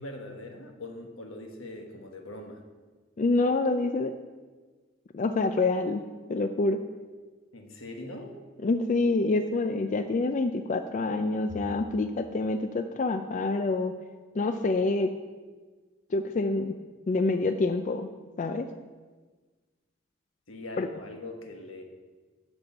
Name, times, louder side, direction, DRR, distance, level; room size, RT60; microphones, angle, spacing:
voice 1, 0.0-2.6 7.5-8.4 20.5-21.8, left 1 dB, 85° left, 3 dB, 1.3 m, -41 dB
voice 2, 3.2-4.1 5.1-6.0 6.3-6.8 8.6-13.9 14.4-15.1 16.1-16.7 17.1-18.1 18.4-18.7 20.8-20.9, left 3 dB, 40° left, 8 dB, 0.4 m, -26 dB
8.0 x 6.2 x 6.9 m, 1.4 s
head